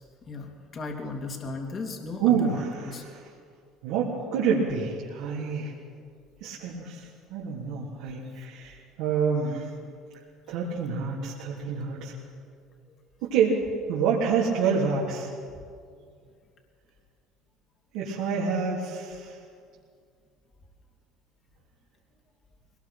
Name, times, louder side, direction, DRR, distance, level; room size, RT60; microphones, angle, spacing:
voice 1, 0.3-3.0, left 3 dB, 40° left, 2 dB, 3.0 m, -36 dB
voice 2, 2.2-2.9 3.8-5.7 6.4-7.0 7.3-9.7 10.5-12.1 13.2-13.6 13.9-15.3 17.9-19.3, right 6 dB, 75° right, -6 dB, 3.3 m, -27 dB
22.0 x 19.5 x 6.0 m, 2.2 s
supercardioid pair, 85°, 0 cm